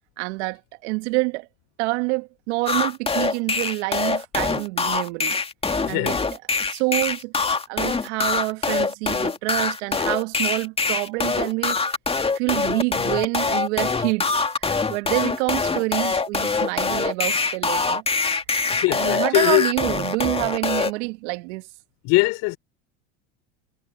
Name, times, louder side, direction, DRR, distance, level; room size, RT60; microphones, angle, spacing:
voice 1, 0.2-1.5 1.8-5.4 5.9-6.1 6.6-7.3 7.7-11.8 12.3-18.0 18.9-21.7, right 25 dB, 75° right, 1.7 m, -27 dB
sound 1, 2.7-20.9, left 4 dB, 15° left, 2.1 m, -24 dB
voice 2, 5.8-6.2 18.7-19.7 22.0-22.6, left 24 dB, 65° left, 3.0 m, -21 dB
supercardioid pair, 95°, 35 cm